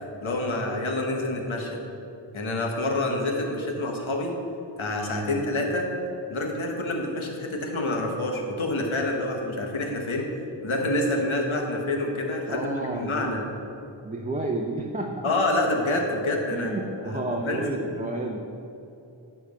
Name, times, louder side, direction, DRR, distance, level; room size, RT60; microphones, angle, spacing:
voice 1, 0.2-1.8 2.3-4.3 4.8-5.9 6.3-10.3 10.6-13.4 15.2-16.7 17.1-17.8, left 2 dB, 80° left, 1 dB, 1.2 m, -27 dB
voice 2, 5.1-5.5 12.5-13.4 14.0-15.3 16.5-18.4, right 2 dB, 15° right, 0 dB, 0.6 m, -31 dB
9.9 x 3.4 x 6.7 m, 2.7 s
cardioid pair, 45°, 47 cm